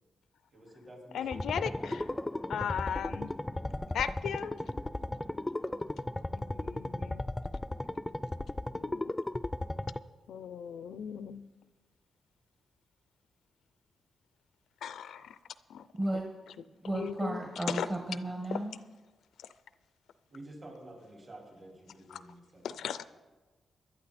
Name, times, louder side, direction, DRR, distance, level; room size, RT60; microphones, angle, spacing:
voice 1, 0.5-1.3 20.3-23.0, right 1 dB, 45° right, -1 dB, 5.0 m, -50 dB
voice 2, 1.1-2.1 2.5-3.3 3.9-4.6 6.3-7.2 8.7-9.1 10.3-11.5 14.8-15.4 15.7-15.8 16.9-17.4 17.7-17.9 18.5-18.6 22.6-23.1, left 8 dB, 80° left, 14 dB, 0.5 m, -37 dB
sound 1, 1.3-10.0, left 1 dB, 15° left, 0.4 m, -36 dB
voice 3, 16.8-18.8, right 1 dB, 30° right, 1 dB, 1.5 m, -34 dB
16.5 x 11.5 x 4.2 m, 1.3 s
cardioid pair, 75°, 0 cm